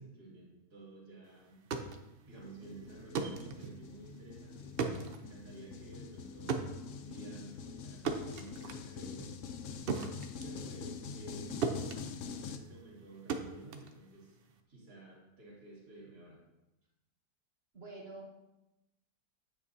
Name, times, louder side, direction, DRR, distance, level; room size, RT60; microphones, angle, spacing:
voice 1, 0.0-1.7 2.2-4.8 5.2-6.6 6.9-9.4 10.4-11.8 12.2-14.4 14.7-16.4, right 2 dB, 70° right, -4 dB, 3.1 m, -52 dB
sound 1, 1.5-11.4 11.6-14.6, right 5 dB, 55° right, 0.6 m, -39 dB
sound 2, 2.3-12.6, left 6 dB, 65° left, 0.8 m, -45 dB
voice 2, 17.7-18.3, right 2 dB, 40° right, 0 dB, 1.4 m, -47 dB
9.5 x 8.2 x 2.7 m, 0.96 s
omnidirectional pair, 1.7 m